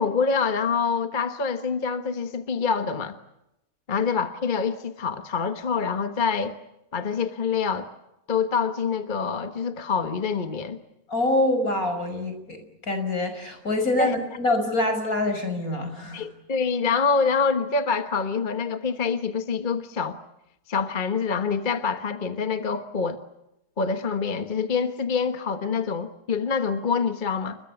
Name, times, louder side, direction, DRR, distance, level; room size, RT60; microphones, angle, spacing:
voice 1, 0.0-3.2 3.9-6.5 6.9-7.9 8.3-10.8 14.0-14.1 16.1-20.2 20.7-23.2 23.8-27.6, left 5 dB, 35° left, 8 dB, 1.4 m, -26 dB
voice 2, 11.1-12.6 12.8-16.3, left 2 dB, 75° left, 7 dB, 6.2 m, -25 dB
29.5 x 23.0 x 7.0 m, 0.87 s
omnidirectional pair, 1.5 m